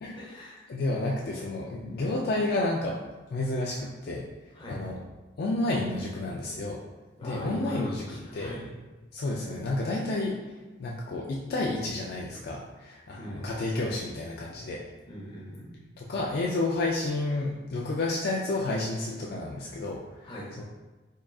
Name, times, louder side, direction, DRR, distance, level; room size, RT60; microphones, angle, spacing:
voice 1, 0.2-0.7 4.6-4.8 7.2-8.6 13.2-13.6 15.1-15.7 20.2-20.5, equal, 25° left, -5 dB, 0.9 m, -40 dB
voice 2, 0.7-3.0 3.3-4.2 4.7-5.0 5.4-6.8 7.2-8.6 9.1-10.4 10.8-14.8 16.0-20.6, left 2 dB, 55° left, -3 dB, 0.4 m, -30 dB
3.6 x 3.6 x 2.3 m, 1.2 s
head